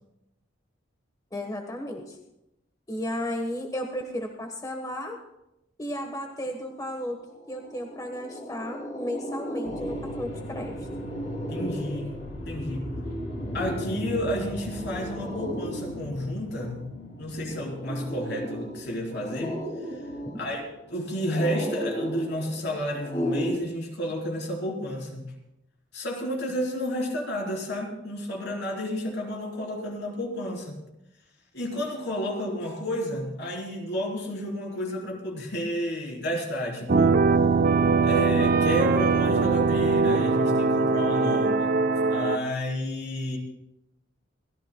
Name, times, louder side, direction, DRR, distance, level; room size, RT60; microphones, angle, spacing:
voice 1, 1.3-2.2 2.9-5.2 5.8-7.2 7.5-10.7 20.2-20.4, left 1 dB, 20° left, 2 dB, 1.2 m, -34 dB
sound 1, 7.0-7.1 7.4-23.6, equal, 40° left, 2.5 m, -35 dB
sound 2, 9.6-22.3 22.8-22.9, equal, 85° left, 3.0 m, -40 dB
voice 2, 11.5-12.9 13.5-16.9 17.2-19.6 19.9-20.0 20.3-25.3 25.9-30.8 31.5-37.2 38.0-41.8 42.1-43.4, equal, 60° left, 0 dB, 3.6 m, -31 dB
sound 3, 36.9-42.4, right 4 dB, 50° right, 0.6 m, -21 dB
29.0 x 14.5 x 2.2 m, 0.86 s
head